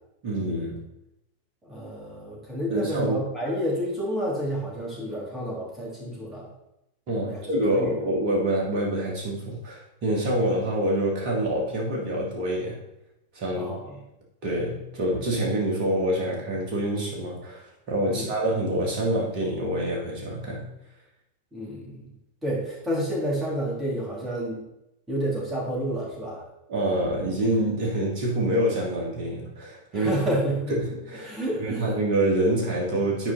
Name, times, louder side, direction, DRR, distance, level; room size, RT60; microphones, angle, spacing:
voice 1, 0.2-0.8 2.7-3.2 7.1-12.8 13.3-13.8 14.4-20.7 26.7-30.4 30.7-33.3, right 1 dB, 45° right, -2 dB, 2.5 m, -26 dB
voice 2, 1.6-6.5 7.3-7.4 7.7-8.0 13.5-14.0 18.1-18.2 21.5-22.1 22.4-24.6 25.1-26.4 29.9-30.7 31.2-31.8, equal, 15° right, -5 dB, 3.2 m, -30 dB
8.9 x 4.8 x 4.0 m, 0.86 s
figure-of-eight pair, 90°, 0 cm